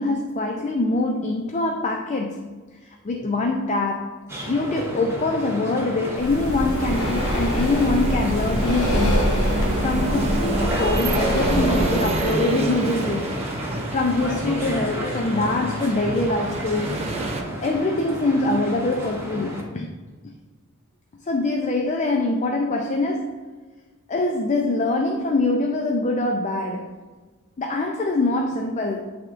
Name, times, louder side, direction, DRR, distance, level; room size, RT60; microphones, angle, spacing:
voice 1, 0.0-2.5 2.8-4.2 4.5-9.3 9.8-13.4 13.9-17.1 17.6-20.0 21.3-23.5 24.1-26.9 27.6-29.0, left 2 dB, 35° left, 2 dB, 0.4 m, -24 dB
sound 1, 4.3-19.6, equal, 10° right, 1.1 m, -32 dB
Breathing, 6.1-12.3, equal, 85° left, 1.1 m, -24 dB
sound 2, 6.8-17.4, right 2 dB, 30° right, 0.6 m, -29 dB
10.5 x 3.5 x 2.5 m, 1.4 s
head